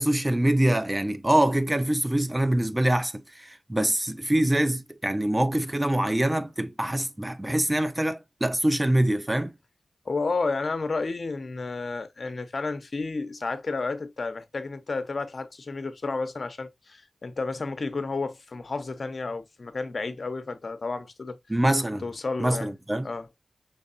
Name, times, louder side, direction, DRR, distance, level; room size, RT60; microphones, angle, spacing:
voice 1, 0.0-9.6 21.5-22.0 22.4-23.1, right 1 dB, 20° right, 0.6 m, -24 dB
voice 2, 10.0-21.4 22.0-22.7 23.0-23.3, left 3 dB, 55° left, 0.8 m, -31 dB
5.1 x 3.7 x 2.5 m
cardioid pair, 55°, 0 cm